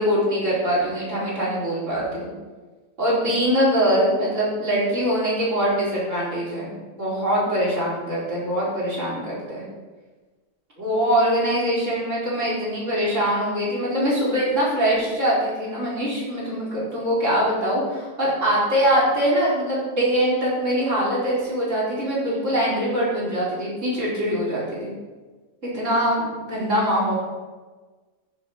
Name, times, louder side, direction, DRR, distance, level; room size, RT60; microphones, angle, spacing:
voice 1, 0.0-2.3 3.0-6.7 7.0-9.6 10.8-24.9 25.6-27.1, equal, 65° right, -7 dB, 4.6 m, -23 dB
14.5 x 7.5 x 4.7 m, 1.3 s
omnidirectional pair, 1.4 m